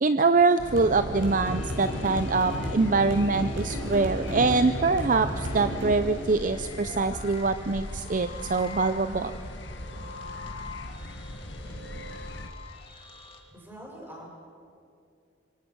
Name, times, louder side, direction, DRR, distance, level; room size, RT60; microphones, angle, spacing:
voice 1, 0.0-9.3, right 3 dB, 45° right, 10 dB, 0.6 m, -24 dB
sound 1, 0.6-12.5, left 1 dB, 70° left, 1.7 m, -40 dB
sound 2, 0.7-7.7, equal, 80° right, 7.1 m, -34 dB
sound 3, 1.2-13.4, left 4 dB, 30° left, 2.9 m, -46 dB
voice 2, 13.5-14.3, right 1 dB, 10° right, -2 dB, 7.1 m, -44 dB
26.5 x 24.5 x 6.2 m, 2.5 s
head